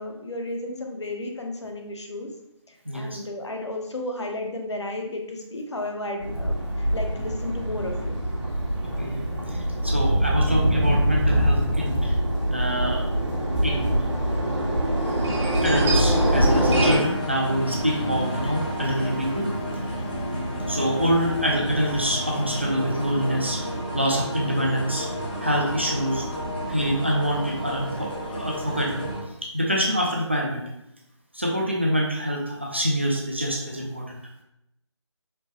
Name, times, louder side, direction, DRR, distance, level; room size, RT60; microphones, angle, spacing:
voice 1, 0.0-2.3 2.9-8.2, left 1 dB, 65° left, 3 dB, 0.7 m, -33 dB
voice 2, 2.9-3.2 8.8-9.2 9.5-12.2 12.5-13.0 13.6-13.9 15.6-19.5 20.7-23.6 23.9-25.1 25.4-26.2 26.7-29.0 29.5-30.6 31.3-34.2, equal, 25° right, -2 dB, 0.3 m, -26 dB
sound 1, 6.2-17.0, right 1 dB, 70° right, 1.4 m, -23 dB
sound 2, 15.6-29.2, equal, 20° left, 0.6 m, -31 dB
4.3 x 2.0 x 2.9 m, 0.81 s
figure-of-eight pair, 165°, 16 cm